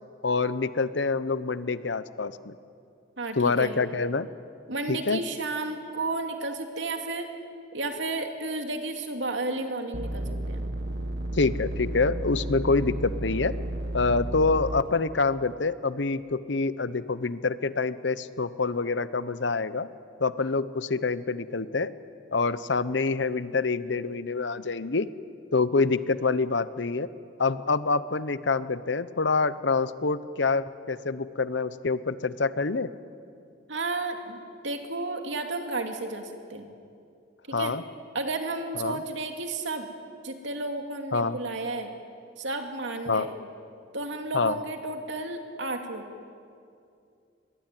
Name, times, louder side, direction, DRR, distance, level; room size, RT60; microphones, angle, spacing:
voice 1, 0.2-2.5 3.4-4.3 4.9-5.2 11.3-13.5 13.9-19.9 20.2-21.9 22.3-25.1 25.5-27.1 27.4-32.9 37.5-37.8 38.8-39.0 41.1-41.4 43.1-43.3 44.3-44.6, left 4 dB, 75° left, 15 dB, 0.9 m, -26 dB
voice 2, 3.2-3.8 4.7-7.3 7.7-10.6 33.7-36.7 37.6-37.7 38.1-39.9 40.2-41.9 42.4-43.3 43.9-46.1, right 2 dB, 80° right, 4 dB, 2.6 m, -32 dB
sound 1, 9.9-14.8, right 1 dB, 65° right, 1.6 m, -32 dB
25.5 x 21.5 x 9.2 m, 2.5 s
head